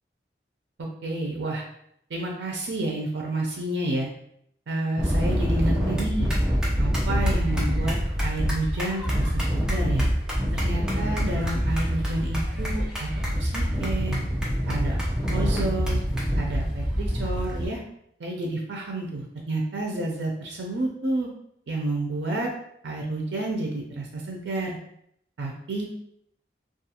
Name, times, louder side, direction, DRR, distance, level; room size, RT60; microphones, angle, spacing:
voice 1, 0.8-1.6 2.1-4.1 4.7-6.3 6.8-8.0 8.2-10.1 10.6-14.2 14.7-15.0 15.3-16.0 16.4-17.8 18.2-21.3 21.7-22.5 22.8-24.8 25.4-25.9, right 2 dB, 80° right, 0 dB, 0.4 m, -30 dB
sound 1, 5.0-17.7, equal, 5° right, 0.5 m, -25 dB
2.3 x 2.3 x 2.8 m, 0.71 s
head